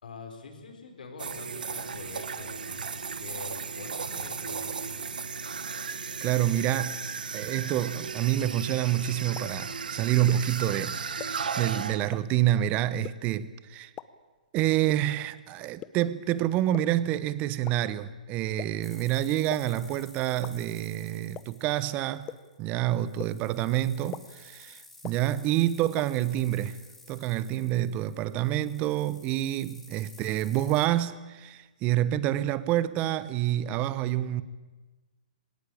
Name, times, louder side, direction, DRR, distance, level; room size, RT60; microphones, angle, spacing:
voice 1, 0.0-5.1, left 4 dB, 80° left, 4.8 m, -45 dB
sound 1, 1.2-12.1, right 5 dB, 85° right, 1.4 m, -35 dB
voice 2, 6.2-7.0 7.3-13.9 14.5-22.3 22.6-26.8 27.1-34.4, right 13 dB, 30° right, 1.0 m, -28 dB
sound 2, 9.4-9.5 10.3-10.4 11.2-11.3 12.1-12.2 13.0-13.1 14.0-14.1 14.9-15.0 15.8-15.9 16.7-16.8 17.7-17.8 18.6-18.7 19.5-19.6 20.4-20.5 21.3-21.4 22.3-22.4 23.2-23.3 24.1-24.2 25.0-25.1 26.0-26.1, left 13 dB, 25° left, 0.8 m, -37 dB
sound 3, 18.8-30.9, left 2 dB, 5° left, 3.3 m, -53 dB
21.0 x 18.0 x 8.6 m
hypercardioid pair, 135°, 5 cm